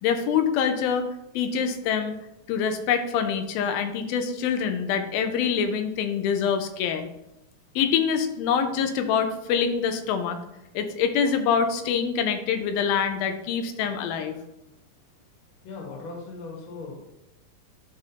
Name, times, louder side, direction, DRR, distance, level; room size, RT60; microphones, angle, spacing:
voice 1, 0.0-1.1 1.4-2.2 2.5-7.1 7.8-10.4 10.7-14.4, left 7 dB, 90° left, 7 dB, 2.6 m, -25 dB
voice 2, 15.6-17.0, left 3 dB, 45° left, -1 dB, 1.9 m, -38 dB
11.0 x 4.9 x 2.8 m, 0.88 s
omnidirectional pair, 4.1 m